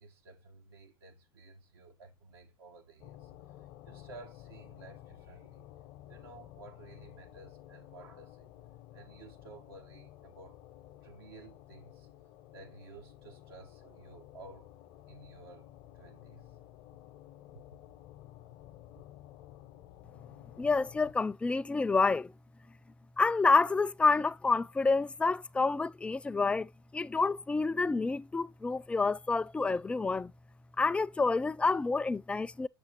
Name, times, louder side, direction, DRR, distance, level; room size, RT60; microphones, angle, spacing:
voice 1, 0.0-3.3 3.8-5.6 6.1-8.5 8.9-10.6 11.0-12.1 12.5-14.7 15.1-15.7 15.9-16.4, right 3 dB, 75° right, 1.3 m, -53 dB
sound 1, 3.0-21.1, left 13 dB, 55° left, 0.8 m, -53 dB
voice 2, 20.6-22.3 23.2-30.3 30.8-32.7, left 4 dB, 10° left, 0.3 m, -28 dB
6.9 x 6.2 x 3.0 m
hypercardioid pair, 90°, 12 cm